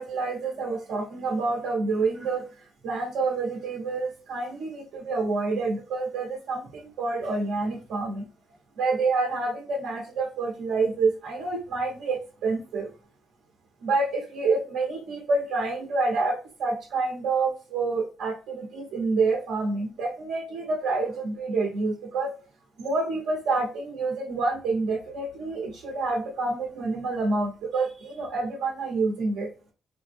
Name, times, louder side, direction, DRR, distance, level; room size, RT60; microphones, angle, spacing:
voice 1, 0.0-2.5 2.8-8.2 8.8-12.9 13.8-22.3 22.8-29.5, right 3 dB, 85° right, -1 dB, 0.8 m, -28 dB
3.4 x 2.1 x 3.3 m, 0.35 s
cardioid pair, 90°, 0 cm